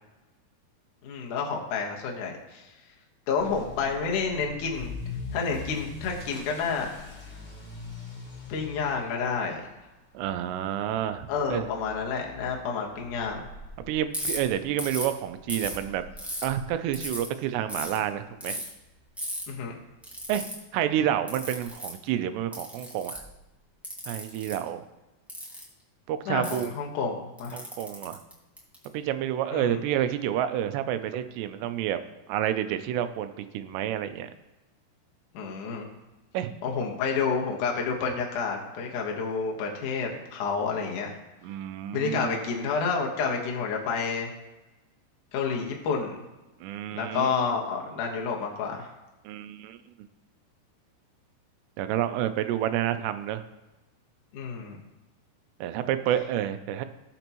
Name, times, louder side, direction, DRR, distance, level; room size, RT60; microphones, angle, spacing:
voice 1, 1.0-2.7 3.3-4.9 5.3-6.9 8.5-9.6 11.3-13.4 19.5-19.7 26.3-27.6 29.5-29.8 35.3-35.9 36.6-41.2 41.9-44.3 45.3-46.2 46.9-48.9 54.3-54.8, left 5 dB, 60° left, -1 dB, 2.5 m, -29 dB
Motor vehicle (road) / Accelerating revving vroom, 3.4-18.2 18.5-18.9 19.4-19.5 19.8-19.9 20.2-20.3 21.6-21.7, left 3 dB, 20° left, 4.3 m, -43 dB
voice 2, 10.1-11.7 13.9-16.0 16.4-18.6 20.3-20.5 20.7-23.3 24.1-24.8 26.1-26.7 27.5-28.2 28.9-32.0 32.3-34.3 36.3-36.5 41.4-42.4 46.6-47.6 49.3-49.8 51.8-53.4 55.6-56.9, right 11 dB, 90° right, 10 dB, 2.8 m, -29 dB
Ratchet pawl, 14.1-14.4 14.8-15.1 15.5-16.4 16.9-17.3 17.7-18.0 18.4-18.7 19.2-19.4 20.0-20.5 21.3-21.9 22.5-23.3 23.8-24.5 25.3-25.6 26.4-26.6 27.4-28.8, equal, ahead, 0.6 m, -35 dB
18.0 x 7.1 x 3.0 m, 1.1 s
omnidirectional pair, 4.8 m